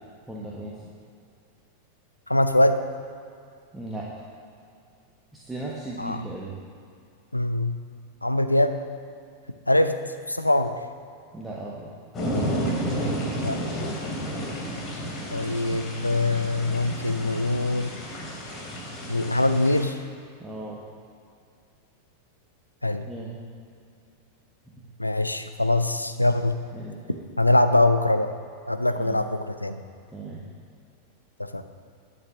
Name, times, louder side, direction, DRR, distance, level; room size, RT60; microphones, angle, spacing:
voice 1, 0.3-0.9 3.7-4.1 5.3-6.6 11.3-11.9 20.4-20.8 22.9-23.4 24.7-24.9 26.7-27.2 29.0-29.3 30.1-30.5, right 2 dB, 5° right, -5 dB, 1.3 m, -37 dB
voice 2, 2.3-2.8 6.0-6.2 7.3-7.8 8.2-8.8 9.7-10.0 10.3-10.8 13.4-13.6 15.3-17.9 19.1-20.0 22.8-23.0 25.0-26.6 27.4-28.3 28.7-29.8 31.4-31.6, left 1 dB, 85° left, 9 dB, 0.6 m, -23 dB
sound 1, 12.1-19.8, equal, 25° left, 2.7 m, -31 dB
11.0 x 6.7 x 6.4 m, 2.4 s
figure-of-eight pair, 90°, 0 cm